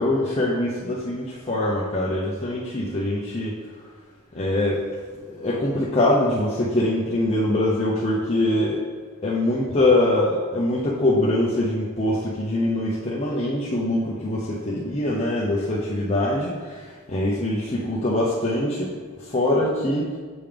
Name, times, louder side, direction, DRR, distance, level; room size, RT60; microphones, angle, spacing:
voice 1, 0.0-3.5 4.3-4.8 5.3-8.8 9.2-16.8 17.1-18.9 19.3-20.1, left 1 dB, 30° left, -6 dB, 0.8 m, -23 dB
7.0 x 5.5 x 3.4 m, 1.5 s
head